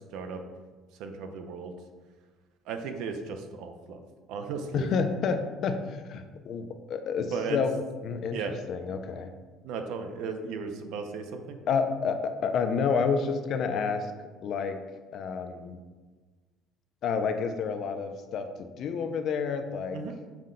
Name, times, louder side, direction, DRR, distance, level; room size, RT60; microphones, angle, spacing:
voice 1, 1.0-1.7 2.7-4.0 4.3-4.9 7.3-7.6 8.3-8.5 9.6-11.6 19.9-20.2, right 5 dB, 60° right, 6 dB, 0.4 m, -35 dB
voice 2, 4.7-7.7 8.0-8.4 8.7-9.3 11.7-14.1 14.4-14.8 15.1-15.8 17.0-20.0, left 5 dB, 40° left, 8 dB, 0.3 m, -29 dB
5.7 x 2.1 x 3.7 m, 1.4 s
cardioid pair, 180°, 0 cm